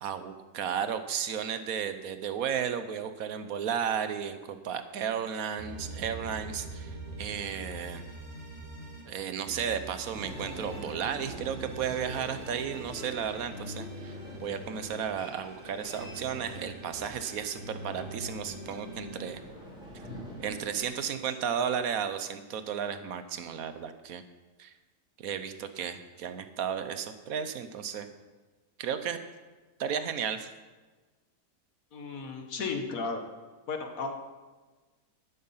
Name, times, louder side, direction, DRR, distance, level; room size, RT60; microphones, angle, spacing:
voice 1, 0.0-8.0 9.0-19.4 20.4-24.2 24.6-24.7 25.2-28.1 28.8-29.2 29.8-30.5, right 8 dB, 65° right, 10 dB, 1.2 m, -34 dB
sound 1, 5.6-9.0 9.4-15.0 15.4-19.3, right 1 dB, 40° right, 2.9 m, -44 dB
sound 2, 10.1-21.4, equal, 5° right, 3.3 m, -46 dB
voice 2, 31.9-33.2 33.7-34.1, left 4 dB, 60° left, 4 dB, 1.7 m, -34 dB
11.5 x 9.7 x 5.6 m, 1.3 s
omnidirectional pair, 1.7 m